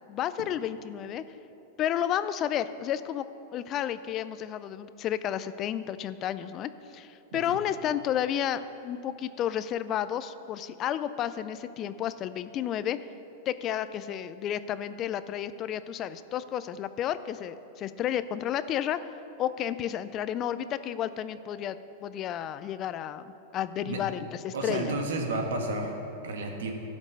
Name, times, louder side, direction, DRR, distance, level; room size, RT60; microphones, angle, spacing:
voice 1, 0.1-1.2 1.8-3.2 3.5-13.0 13.5-19.1 19.4-25.0, left 10 dB, 40° left, 14 dB, 0.4 m, -32 dB
voice 2, 24.5-26.7, right 2 dB, 80° right, 3 dB, 1.5 m, -32 dB
12.0 x 5.3 x 6.4 m, 2.9 s
hypercardioid pair, 115°, 0 cm